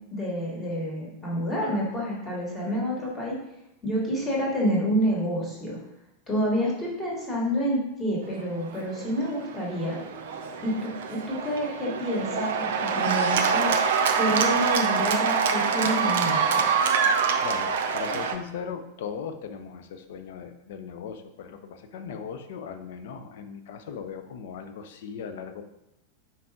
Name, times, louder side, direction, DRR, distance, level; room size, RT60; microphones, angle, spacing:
voice 1, 0.1-3.4 3.8-5.8 6.3-10.0 10.6-13.7 14.2-16.7, equal, 20° left, -4 dB, 2.3 m, -28 dB
Cheering / Applause, 8.7-18.4, right 6 dB, 55° right, 0.5 m, -25 dB
voice 2, 17.4-25.6, left 7 dB, 55° left, 8 dB, 0.6 m, -38 dB
5.7 x 4.7 x 3.7 m, 0.85 s
figure-of-eight pair, 90°, 0 cm